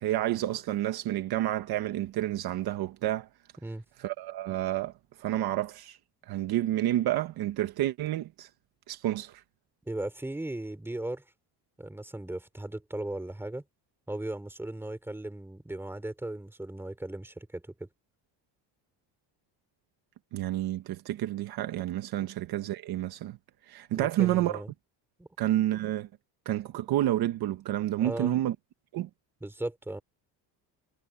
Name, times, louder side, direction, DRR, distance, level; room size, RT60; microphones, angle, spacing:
voice 1, 0.0-3.3 4.0-4.9 5.2-6.0 6.3-8.5 8.9-9.4 20.3-23.4 23.7-24.6 25.4-26.1 26.4-28.5 28.9-29.1, right 13 dB, 55° right, 1.2 m, -29 dB
voice 2, 9.9-11.2 11.8-13.6 14.1-17.9 22.2-22.3 23.9-24.7 25.2-25.3 28.0-28.4 29.4-30.0, right 1 dB, 5° right, 3.4 m, -37 dB
cardioid pair, 180°, 45 cm